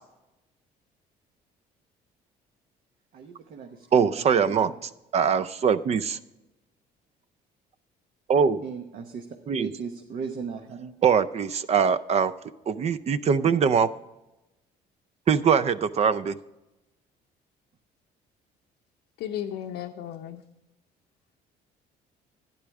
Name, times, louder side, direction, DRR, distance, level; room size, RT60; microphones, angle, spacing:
voice 1, 3.1-4.1 4.5-4.7 8.6-9.2 9.6-10.9, right 6 dB, 60° right, 4 dB, 1.0 m, -37 dB
voice 2, 3.9-6.2 8.3-8.6 9.5-9.7 11.0-12.3 12.7-13.9 15.3-16.4, right 6 dB, 40° right, 15 dB, 0.5 m, -22 dB
voice 3, 19.2-20.4, left 10 dB, 85° left, 2 dB, 0.7 m, -34 dB
12.0 x 9.8 x 3.6 m, 0.97 s
cardioid pair, 110°, 17 cm